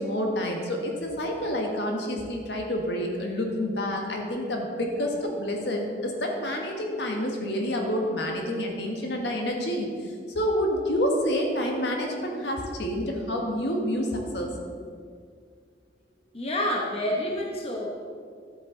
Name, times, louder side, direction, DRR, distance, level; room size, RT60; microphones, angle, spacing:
voice 1, 0.0-14.5, equal, 75° left, 1 dB, 1.5 m, -28 dB
voice 2, 16.3-17.9, left 1 dB, 35° left, -1 dB, 1.0 m, -28 dB
12.0 x 8.0 x 3.9 m, 2.1 s
head